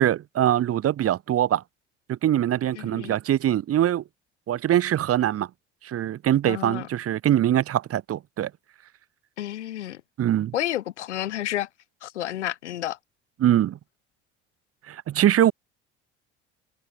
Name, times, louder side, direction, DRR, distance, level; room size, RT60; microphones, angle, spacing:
voice 1, 0.0-1.6 2.1-4.0 4.5-5.5 5.8-8.5 10.2-10.5 13.4-13.8 14.9-15.5, right 11 dB, 40° right, 1.3 m, -23 dB
voice 2, 2.8-3.1 6.5-6.9 9.4-10.0 10.5-11.7 12.0-13.0, left 12 dB, 80° left, 3.1 m, -30 dB
hypercardioid pair, 65°, 34 cm